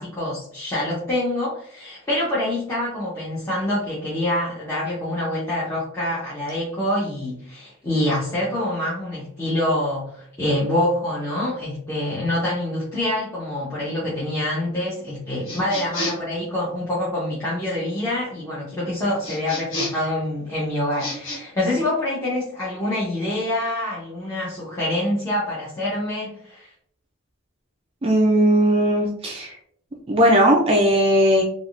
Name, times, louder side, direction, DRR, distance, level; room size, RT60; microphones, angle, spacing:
voice 1, 0.0-26.7, left 1 dB, 15° left, -9 dB, 0.8 m, -26 dB
sound 1, 15.4-16.3 19.2-20.1 20.9-21.4, left 1 dB, 60° left, 1.3 m, -30 dB
voice 2, 28.0-29.5 30.1-31.5, equal, 25° right, 1 dB, 0.3 m, -17 dB
3.4 x 2.3 x 2.4 m, 0.66 s
head